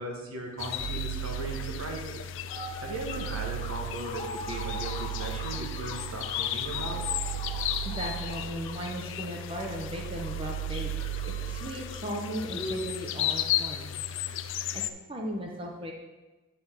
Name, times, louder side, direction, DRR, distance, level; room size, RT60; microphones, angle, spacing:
voice 1, 0.0-2.3 2.8-7.1, right 1 dB, 85° right, 1 dB, 1.6 m, -38 dB
sound 1, 0.6-14.9, left 10 dB, 60° left, 0.4 m, -35 dB
sound 2, 0.8-2.2 2.6-9.2 9.5-11.8, right 17 dB, 65° right, 0.3 m, -37 dB
sound 3, 2.5-12.8, equal, 20° left, 1.2 m, -42 dB
voice 2, 7.8-10.9 11.2-13.9 14.7-14.8 15.1-15.9, equal, 25° right, 0 dB, 0.8 m, -37 dB
9.3 x 4.2 x 5.6 m, 1.1 s
head